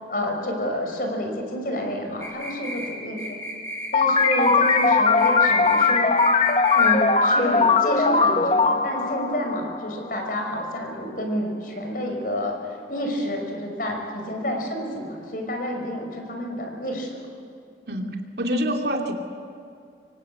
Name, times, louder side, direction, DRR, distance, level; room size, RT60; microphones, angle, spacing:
voice 1, 0.1-3.4 3.9-6.2 6.7-12.6 12.9-17.3, equal, 50° left, 3 dB, 5.5 m, -29 dB
sound 1, 2.2-2.9 3.2-3.9 4.2-4.9 5.2-5.9 6.2-6.9, equal, 15° left, 5.8 m, -34 dB
sound 2, 3.9-10.2, left 4 dB, 35° left, 1.0 m, -20 dB
voice 2, 17.9-19.1, equal, 70° right, 2 dB, 2.5 m, -26 dB
26.0 x 24.5 x 8.7 m, 2.3 s
head